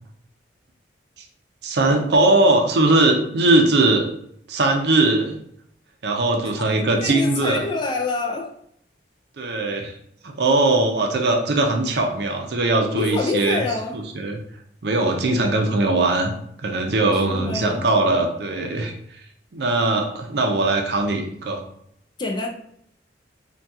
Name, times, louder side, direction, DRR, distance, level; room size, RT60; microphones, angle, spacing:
voice 1, 1.6-4.0 4.5-5.4 6.0-7.6 9.4-9.9 10.2-13.6 13.9-14.4 14.8-16.3 16.6-18.9 19.5-21.6, right 2 dB, 60° right, 0.5 m, -20 dB
voice 2, 7.0-8.5 12.9-14.0 17.1-17.8 22.2-22.5, left 3 dB, 25° left, 0.3 m, -26 dB
2.8 x 2.3 x 3.4 m
head